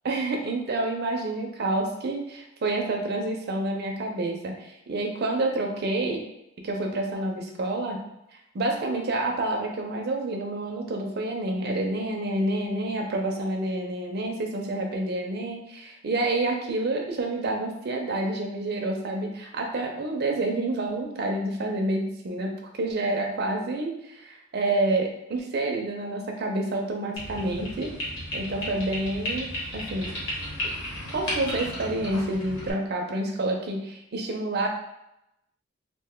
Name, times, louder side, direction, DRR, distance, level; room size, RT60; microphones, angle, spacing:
voice 1, 0.0-6.2 6.6-8.0 8.5-27.9 28.3-30.1 31.1-34.7, right 2 dB, 50° right, 1 dB, 0.4 m, -28 dB
sound 1, 27.2-32.7, equal, 65° left, 1.0 m, -34 dB
2.5 x 2.2 x 3.6 m, 0.84 s
head